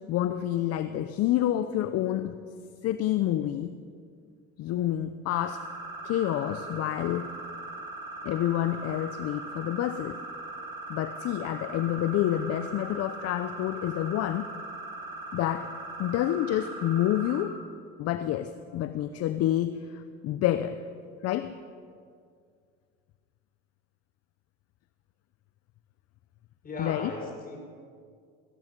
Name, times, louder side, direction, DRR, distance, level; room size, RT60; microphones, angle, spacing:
voice 1, 0.1-2.4 2.8-3.7 4.6-5.6 6.0-7.3 8.2-10.2 10.9-14.5 15.3-15.7 16.0-17.6 18.0-20.8 21.2-21.5 26.8-27.1, left 12 dB, 55° left, 11 dB, 0.7 m, -28 dB
sound 1, 5.3-17.4, right 2 dB, 10° right, 3.0 m, -40 dB
voice 2, 26.6-27.6, left 3 dB, 30° left, 0 dB, 5.1 m, -36 dB
17.5 x 15.5 x 5.3 m, 2.2 s
supercardioid pair, 95°, 30 cm